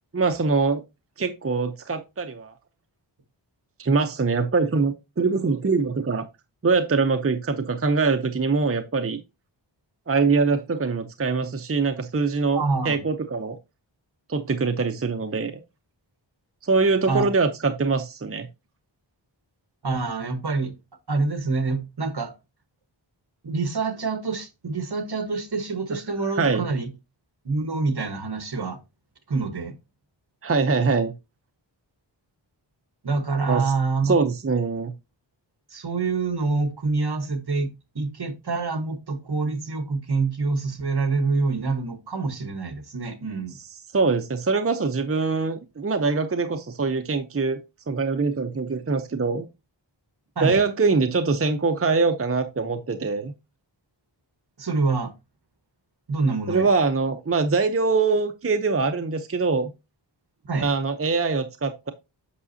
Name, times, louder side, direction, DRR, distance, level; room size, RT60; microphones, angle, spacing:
voice 1, 0.1-0.8 1.2-2.5 3.8-6.3 6.6-9.2 10.1-13.6 14.3-15.5 16.6-18.5 26.4-26.6 30.4-31.1 33.5-33.6 34.0-34.9 43.9-47.6 47.9-49.5 50.4-53.3 56.5-59.7 60.6-61.9, right 4 dB, 30° right, 0.7 m, -23 dB
voice 2, 12.5-13.0 17.1-17.3 19.8-20.7 21.1-22.3 23.4-26.9 27.4-28.8 29.3-29.7 33.0-34.1 35.7-43.6 50.3-50.6 54.6-55.1 56.1-56.7 60.5-60.7, right 3 dB, 55° right, 1.4 m, -26 dB
8.4 x 6.0 x 2.7 m
wide cardioid pair, 85°, 46 cm